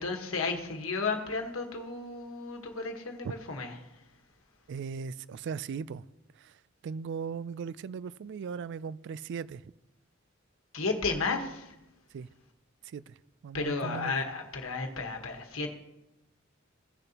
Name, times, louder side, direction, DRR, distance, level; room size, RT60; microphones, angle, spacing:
voice 1, 0.0-3.7 10.7-11.8 13.5-15.7, left 4 dB, 75° left, 1.4 m, -33 dB
voice 2, 4.7-6.0 6.4-6.6 6.8-9.7 12.1-12.3 12.8-13.2 13.4-14.2, right 6 dB, 60° right, 0.3 m, -38 dB
17.0 x 6.7 x 2.9 m
head